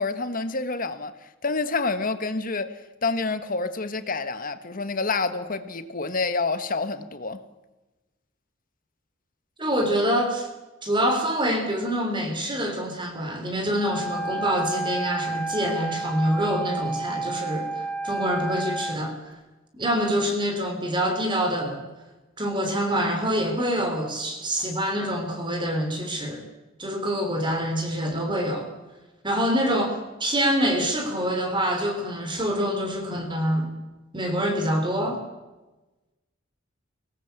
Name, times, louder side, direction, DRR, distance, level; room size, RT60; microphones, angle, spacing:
voice 1, 0.0-7.4, left 3 dB, 45° left, 1.5 m, -28 dB
voice 2, 9.6-10.5 10.8-19.1 19.7-21.8 22.4-26.4 26.8-28.7 29.2-33.7 34.1-35.2, equal, 25° right, 3.4 m, -26 dB
Wind instrument woodwind instrument, 13.7-19.0, right 2 dB, 5° left, 0.8 m, -31 dB
24.5 x 18.5 x 8.1 m
head